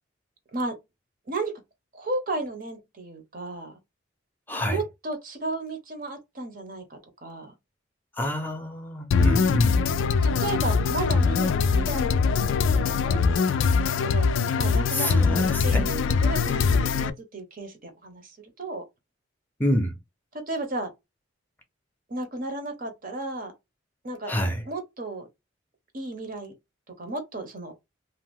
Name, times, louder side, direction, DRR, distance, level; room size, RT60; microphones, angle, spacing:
voice 1, 1.3-1.6 1.9-3.8 4.7-7.5 10.2-14.3 14.6-15.2 15.6-18.8 20.3-20.9 22.1-23.5 24.0-24.3 24.7-25.3 25.9-26.5 27.0-27.7, right 2 dB, 45° right, 0.8 m, -34 dB
voice 2, 4.5-4.8 8.1-9.8 14.9-15.9 19.6-19.9 24.3-24.6, equal, 10° left, 0.6 m, -27 dB
sound 1, 9.1-17.1, left 5 dB, 80° left, 0.3 m, -22 dB
2.5 x 2.2 x 3.5 m
head